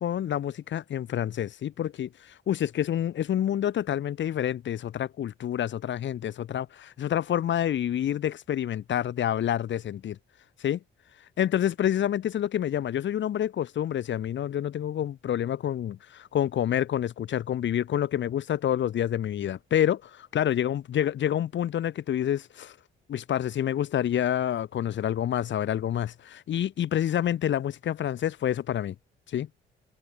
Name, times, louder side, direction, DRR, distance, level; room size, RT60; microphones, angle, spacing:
voice 1, 0.0-2.1 2.5-10.2 10.6-10.8 11.4-22.7 23.1-28.9 29.3-29.5, left 10 dB, 70° left, 5.4 m, -28 dB
cardioid pair, 90°, 20 cm